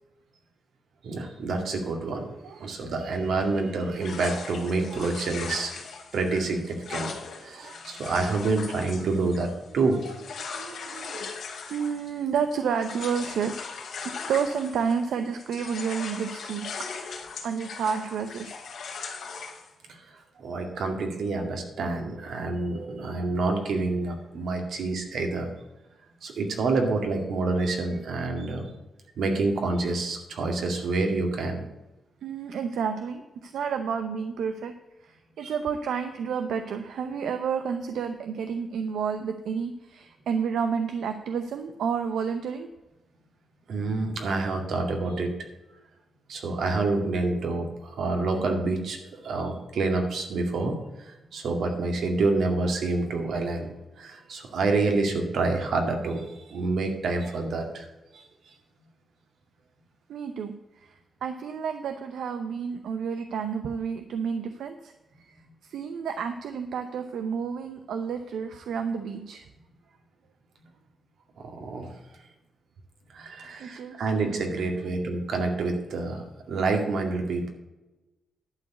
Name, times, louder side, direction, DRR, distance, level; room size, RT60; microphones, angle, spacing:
voice 1, 1.0-2.3 2.6-5.7 6.1-7.1 7.4-10.0 19.9-25.5 26.2-28.7 29.2-31.7 35.4-35.5 43.7-45.3 46.3-53.7 54.0-57.9 58.1-58.2 71.4-71.9 73.1-77.5, right 3 dB, 75° right, 3 dB, 2.1 m, -28 dB
sound 1, 4.0-15.1 15.4-19.7, left 5 dB, 70° left, 2.1 m, -39 dB
voice 2, 4.9-5.3 7.5-7.8 9.9-10.1 10.4-11.3 11.7-13.5 14.0-16.7 17.4-18.5 32.2-34.7 35.0-42.7 60.1-60.5 60.8-64.9 65.6-69.4 73.6-74.0 74.2-74.4, right 6 dB, 90° right, 8 dB, 0.7 m, -30 dB
11.5 x 4.8 x 8.0 m, 1.1 s
wide cardioid pair, 125°, 0 cm